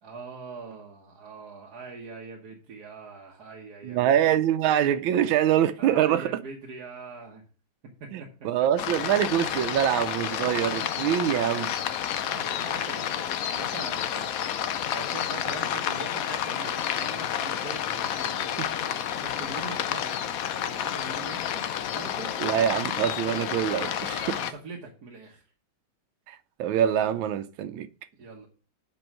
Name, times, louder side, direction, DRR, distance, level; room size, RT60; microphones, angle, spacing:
voice 1, 0.0-4.4 5.8-7.4 7.8-8.3 12.2-14.7 14.9-18.5 19.1-22.4 24.2-25.4 28.2-28.5, right 4 dB, 55° right, 1.6 m, -43 dB
voice 2, 3.8-6.3 8.1-11.7 18.6-18.7 22.4-24.4 26.3-27.9, right 10 dB, 85° right, 1.4 m, -25 dB
sound 1, 8.8-24.5, left 9 dB, 70° left, 0.8 m, -30 dB
7.6 x 5.3 x 6.0 m
omnidirectional pair, 2.1 m